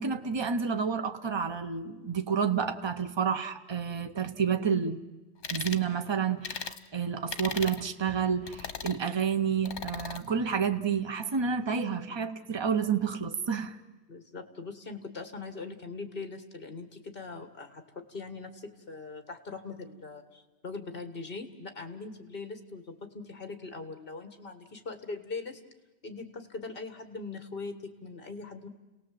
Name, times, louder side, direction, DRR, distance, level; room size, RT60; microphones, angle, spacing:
voice 1, 0.0-5.0 5.5-13.8, right 6 dB, 25° right, 7 dB, 0.9 m, -30 dB
sound 1, 5.4-5.8 6.4-6.8 7.3-7.8 8.5-9.0 9.7-10.2, left 6 dB, 85° left, 1.3 m, -37 dB
voice 2, 14.1-25.6 26.0-28.7, left 3 dB, 55° left, 8 dB, 2.0 m, -41 dB
30.0 x 18.0 x 7.8 m, 1.1 s
omnidirectional pair, 1.1 m